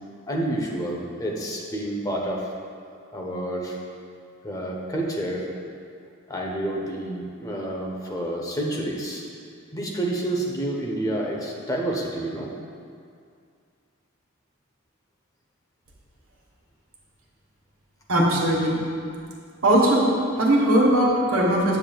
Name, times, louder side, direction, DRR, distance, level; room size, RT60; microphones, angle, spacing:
voice 1, 0.3-2.5 3.1-3.8 4.4-5.5 6.3-9.2 9.7-12.5, right 1 dB, 15° left, -1 dB, 0.7 m, -29 dB
voice 2, 18.1-18.8 19.6-21.8, right 1 dB, 80° right, -3 dB, 1.3 m, -19 dB
7.4 x 6.8 x 2.3 m, 2.3 s
head